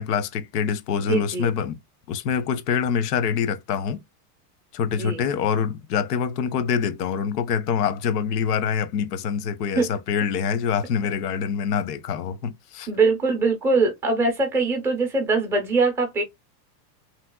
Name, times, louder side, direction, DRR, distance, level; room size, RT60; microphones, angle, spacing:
voice 1, 0.0-1.8 2.1-4.0 4.7-12.9, left 7 dB, 85° left, 0.8 m, -25 dB
voice 2, 1.0-1.5 4.9-5.2 9.8-9.9 12.9-16.2, right 3 dB, 5° right, 0.4 m, -22 dB
3.2 x 2.9 x 2.2 m
supercardioid pair, 155°, 47 cm